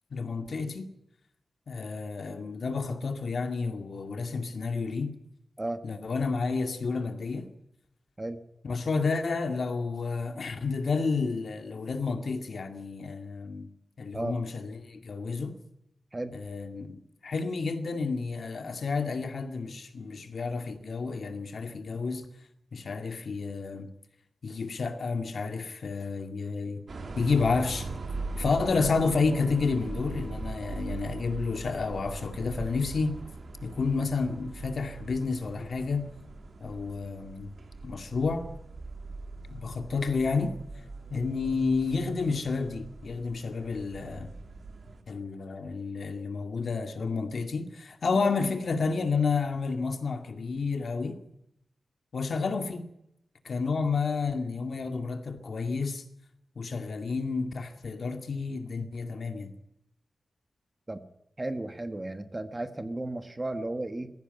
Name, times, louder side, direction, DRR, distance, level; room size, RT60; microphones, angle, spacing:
voice 1, 0.1-0.9 1.7-5.2 5.8-7.5 8.6-13.7 14.0-15.6 16.3-22.3 22.7-23.9 24.4-26.8 27.2-27.9 28.4-33.2 33.6-36.1 36.6-37.5 37.8-38.5 39.5-40.6 41.1-44.3 45.1-51.2 52.1-52.9 53.4-56.0 56.6-59.5, left 4 dB, 55° left, 2.2 m, -30 dB
sound 1, 26.9-45.0, right 3 dB, 50° right, 2.6 m, -41 dB
voice 2, 61.4-64.1, right 2 dB, 20° right, 1.3 m, -34 dB
21.0 x 15.5 x 9.2 m
wide cardioid pair, 175°, 0 cm